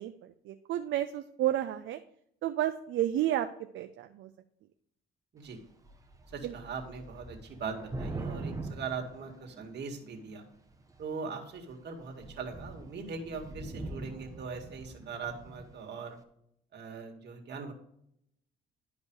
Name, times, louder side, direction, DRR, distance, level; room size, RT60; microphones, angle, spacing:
voice 1, 0.0-2.0 2.4-3.5 3.7-4.3 6.4-6.5, right 12 dB, 80° right, 8 dB, 0.6 m, -31 dB
Thunder / Rain, 5.5-5.6 5.8-10.0 10.7-11.1 11.6-11.7 12.0-15.7, right 2 dB, 15° right, 1.3 m, -43 dB
voice 2, 6.3-10.4 11.0-16.2 16.7-17.7, right 5 dB, 60° right, 3 dB, 2.2 m, -40 dB
11.5 x 5.2 x 4.8 m, 0.71 s
cardioid pair, 90°, 20 cm